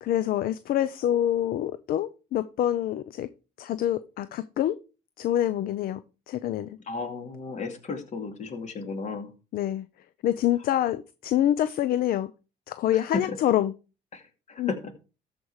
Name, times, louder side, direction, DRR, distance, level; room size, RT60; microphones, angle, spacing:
voice 1, 0.0-3.3 3.6-4.8 5.2-6.0 6.3-6.8 9.5-9.9 10.2-12.3 12.7-13.7 14.6-14.7, left 12 dB, 60° left, 0.6 m, -26 dB
voice 2, 6.9-9.3 12.9-13.0 14.1-14.2 14.5-14.8, left 4 dB, 45° left, 2.4 m, -34 dB
13.5 x 5.2 x 4.8 m
cardioid pair, 110°, 17 cm